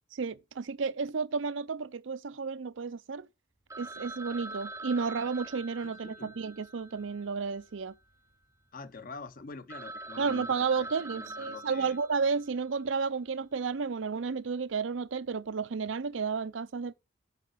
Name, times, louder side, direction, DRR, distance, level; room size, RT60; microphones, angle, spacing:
voice 1, 0.1-3.3 3.8-7.9 10.2-16.9, right 5 dB, 90° right, 0.6 m, -32 dB
Telephone, 3.7-8.0 8.3-8.4 9.0-9.1 9.4-9.5 9.7-12.7, right 2 dB, 15° right, 0.5 m, -44 dB
voice 2, 5.8-6.4 8.7-12.0, left 4 dB, 45° left, 0.7 m, -46 dB
8.2 x 5.7 x 6.7 m
head